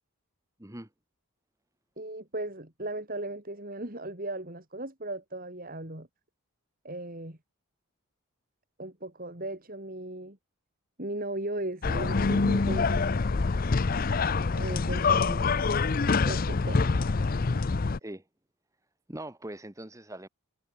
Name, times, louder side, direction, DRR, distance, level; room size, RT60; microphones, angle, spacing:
voice 1, 2.0-6.1 6.8-7.4 8.8-10.4 11.0-13.2 14.6-15.6 16.2-17.0, right 1 dB, 40° right, 3.2 m, -37 dB
sound 1, 11.8-18.0, left 4 dB, 40° left, 0.5 m, -26 dB
voice 2, 19.1-20.3, right 1 dB, 15° right, 1.5 m, -41 dB
head